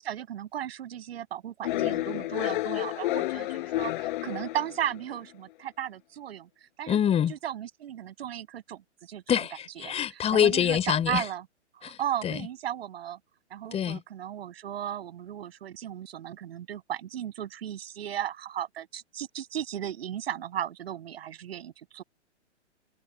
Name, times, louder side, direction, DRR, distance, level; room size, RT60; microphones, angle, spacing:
voice 1, 0.0-6.5 6.8-7.0 7.3-9.3 9.8-11.4 11.7-13.2 13.5-22.0, right 10 dB, 55° right, 7.8 m, -35 dB
sound 1, 1.6-5.2, left 17 dB, 45° left, 4.6 m, -30 dB
voice 2, 6.9-7.4 9.3-11.2 11.8-12.5 13.7-14.0, left 9 dB, 15° left, 3.5 m, -26 dB
figure-of-eight pair, 120°, 36 cm